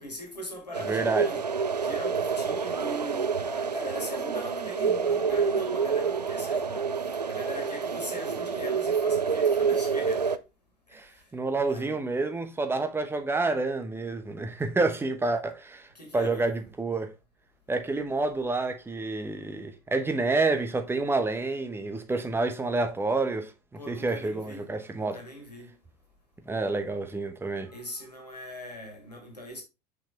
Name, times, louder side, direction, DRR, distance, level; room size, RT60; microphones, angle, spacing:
voice 1, 0.0-1.4 1.8-10.3 10.9-11.2 11.6-12.0 15.9-16.6 23.8-25.7 27.6-29.6, left 1 dB, 85° left, 2.0 m, -41 dB
sound 1, 0.7-10.4, right 6 dB, 90° right, 0.4 m, -28 dB
voice 2, 0.9-1.3 10.9-15.9 16.1-17.1 17.7-23.5 23.9-25.2 26.4-27.7, right 3 dB, 10° right, 1.0 m, -28 dB
5.9 x 4.8 x 3.4 m
figure-of-eight pair, 75°, 20 cm